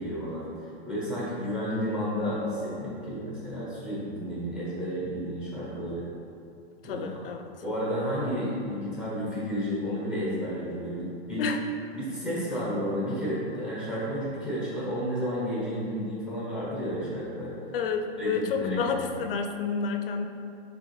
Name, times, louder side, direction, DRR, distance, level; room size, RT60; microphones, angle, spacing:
voice 1, 0.0-6.1 6.8-7.1 7.6-11.5 11.9-17.6 18.2-19.1, equal, 5° right, -8 dB, 0.7 m, -31 dB
voice 2, 2.8-3.1 6.8-7.4 11.4-11.6 17.7-20.3, left 5 dB, 60° left, 5 dB, 0.5 m, -30 dB
6.4 x 2.5 x 3.1 m, 2.5 s
hypercardioid pair, 160°, 32 cm